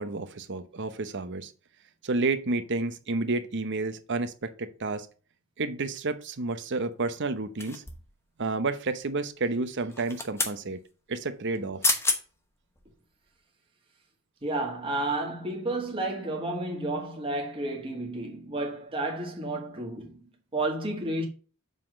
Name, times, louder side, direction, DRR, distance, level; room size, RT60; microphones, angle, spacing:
voice 1, 0.0-1.5 2.0-5.1 5.6-7.8 8.4-10.8 11.1-11.8, right 3 dB, 55° right, 0.8 m, -30 dB
sound 1, 7.6-8.2 9.9-10.6 11.6-11.7 11.8-12.2 12.8-12.9, left 3 dB, 10° left, 1.0 m, -28 dB
voice 2, 14.4-21.3, right 2 dB, 25° right, 2.0 m, -31 dB
7.4 x 3.8 x 6.3 m
head